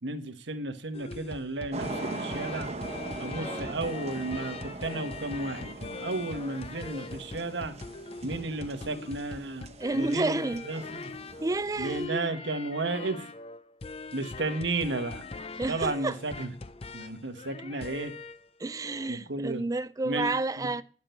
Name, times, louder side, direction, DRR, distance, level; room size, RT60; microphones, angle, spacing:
voice 1, 0.0-2.7 3.2-7.7 8.2-9.7 9.9-11.1 11.8-13.3 14.1-15.2 15.7-16.5 16.9-18.1 19.1-19.6 20.0-20.7, right 2 dB, 85° right, 1.4 m, -33 dB
sound 1, 0.9-18.5 18.8-19.1, left 3 dB, 35° left, 0.5 m, -42 dB
sound 2, 1.7-12.1, right 2 dB, 35° right, 1.0 m, -41 dB
voice 2, 3.3-3.8 9.8-10.7 11.4-12.3 15.6-16.2 18.6-20.8, right 2 dB, 20° right, 0.4 m, -31 dB
11.0 x 7.6 x 4.4 m
head